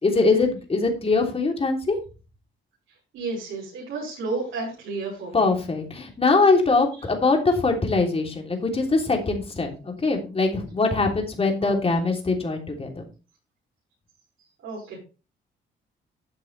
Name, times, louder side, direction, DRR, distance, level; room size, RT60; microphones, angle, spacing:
voice 1, 0.0-2.0 5.3-13.0, left 3 dB, 30° left, 2 dB, 3.3 m, -22 dB
voice 2, 3.1-5.4 11.6-11.8 14.6-15.0, right 3 dB, 80° right, -5 dB, 5.6 m, -31 dB
11.5 x 7.6 x 3.4 m, 0.32 s
cardioid pair, 90°, 20 cm